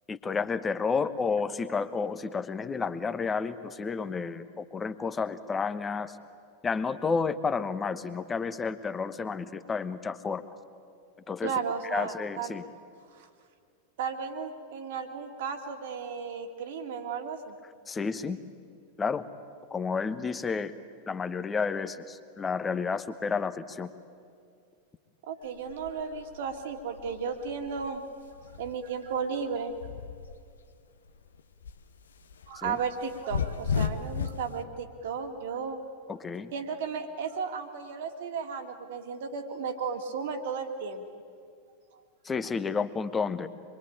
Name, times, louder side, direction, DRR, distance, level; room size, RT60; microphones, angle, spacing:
voice 1, 0.1-6.2 6.6-10.4 11.3-11.5 11.9-12.6 17.9-18.4 19.0-19.2 19.7-20.7 21.1-23.9 32.6-32.8 36.1-36.5 42.2-43.5, left 5 dB, 15° left, 12 dB, 1.2 m, -31 dB
voice 2, 11.4-12.5 13.1-13.3 14.0-17.6 25.3-28.0 28.6-29.7 32.5-35.8 36.5-41.1 41.9-42.0, right 6 dB, 55° right, 6 dB, 2.2 m, -34 dB
sound 1, 25.4-30.7 31.1-34.5, left 6 dB, 70° left, 1.0 m, -35 dB
26.0 x 23.0 x 8.8 m, 2.3 s
figure-of-eight pair, 90°, 0 cm